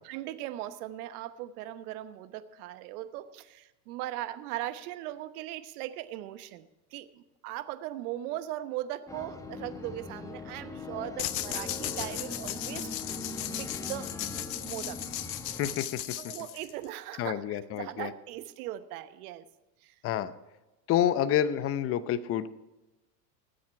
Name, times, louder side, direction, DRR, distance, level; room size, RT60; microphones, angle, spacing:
voice 1, 0.0-12.9 13.6-14.1 14.5-15.0 16.2-19.5 19.8-19.9, right 14 dB, 60° right, 12 dB, 1.1 m, -39 dB
sound 1, 9.1-15.8, left 2 dB, 5° left, 1.0 m, -41 dB
sound 2, 11.2-16.9, left 13 dB, 85° left, 0.9 m, -36 dB
voice 2, 15.5-16.0 17.2-18.1 20.0-20.3 20.9-22.5, left 10 dB, 30° left, 14 dB, 0.7 m, -28 dB
19.0 x 7.7 x 4.6 m, 1.0 s
hypercardioid pair, 115°, 50 cm